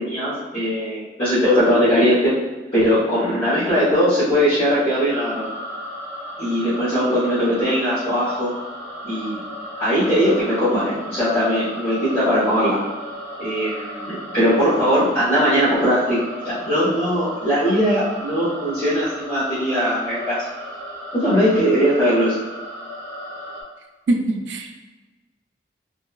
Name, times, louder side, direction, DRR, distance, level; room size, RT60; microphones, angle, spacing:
voice 1, 0.0-2.3 2.7-5.5 6.4-8.5 9.0-9.4 9.8-12.8 13.4-16.2 16.4-20.4 21.1-22.3, equal, 30° left, -14 dB, 0.9 m, -20 dB
sound 1, 5.1-23.6, equal, 70° left, 1.2 m, -35 dB
voice 2, 24.1-24.9, right 2 dB, 85° right, 4 dB, 0.3 m, -23 dB
2.7 x 2.2 x 2.3 m, 1.2 s
head